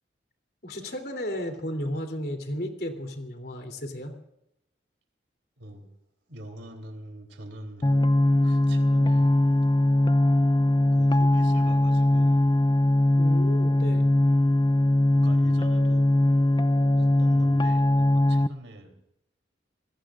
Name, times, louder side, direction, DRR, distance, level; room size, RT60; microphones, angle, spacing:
voice 1, 0.6-4.1 13.2-14.1, equal, 55° left, 4 dB, 3.3 m, -33 dB
voice 2, 5.6-5.9 6.3-8.0 8.4-9.4 10.9-12.5 15.1-16.1 17.0-19.0, right 1 dB, 85° right, 5 dB, 3.5 m, -44 dB
sound 1, 7.8-18.5, left 1 dB, 25° left, 0.5 m, -21 dB
26.5 x 20.5 x 2.5 m, 0.80 s
head